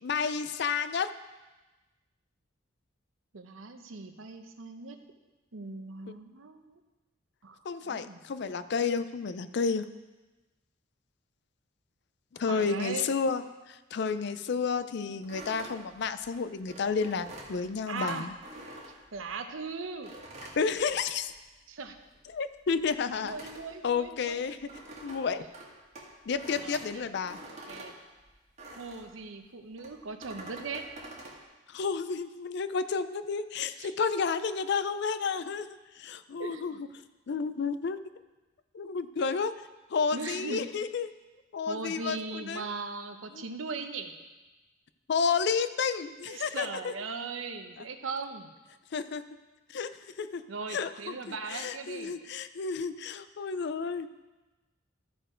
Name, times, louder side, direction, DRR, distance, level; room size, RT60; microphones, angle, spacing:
voice 1, 0.0-1.1 7.7-9.8 12.4-18.3 20.6-21.3 22.3-23.3 23.8-24.6 25.0-25.5 26.3-27.4 31.7-35.7 36.0-36.9 37.3-38.0 38.7-39.5 39.9-41.1 41.5-42.7 43.3-43.4 45.1-46.9 47.8-47.9 48.9-49.2 49.7-49.9 50.2-50.4 50.7-54.1, left 5 dB, 60° left, 13 dB, 0.4 m, -31 dB
voice 2, 3.3-5.0 5.5-6.8 7.4-7.6 7.9-8.2 12.5-13.1 17.9-18.3 19.1-20.1 21.7-22.0 23.2-24.4 26.6-27.0 27.5-27.9 28.8-30.9 33.8-33.9 36.4-36.8 40.1-40.6 41.7-44.1 46.3-48.5 50.5-52.1, right 4 dB, 85° right, 7 dB, 0.8 m, -39 dB
sound 1, 15.2-19.5 20.0-21.5 21.8-29.2 29.8-31.4, right 1 dB, 35° right, 1.7 m, -47 dB
13.5 x 4.4 x 5.0 m, 1.1 s
head